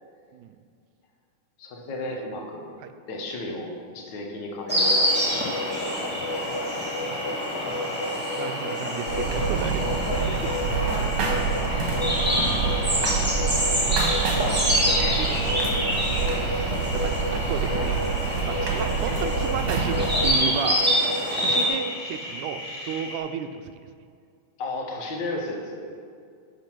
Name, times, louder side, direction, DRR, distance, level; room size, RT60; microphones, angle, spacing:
voice 1, 1.6-2.7 3.1-4.9 5.3-6.1 10.1-10.4 24.6-25.9, left 2 dB, 65° left, 0 dB, 1.1 m, -34 dB
Insect, 4.7-21.7, equal, 10° right, 0.5 m, -26 dB
sound 1, 5.1-23.2, left 1 dB, 45° left, 2.4 m, -37 dB
voice 2, 6.7-7.4 7.6-9.9 10.1-11.6 13.5-18.1 18.5-20.9 21.3-23.7, right 9 dB, 80° right, 9 dB, 1.9 m, -35 dB
sound 2, 9.1-20.3, right 5 dB, 60° right, 2.1 m, -27 dB
10.5 x 5.5 x 6.0 m, 2.2 s
omnidirectional pair, 3.7 m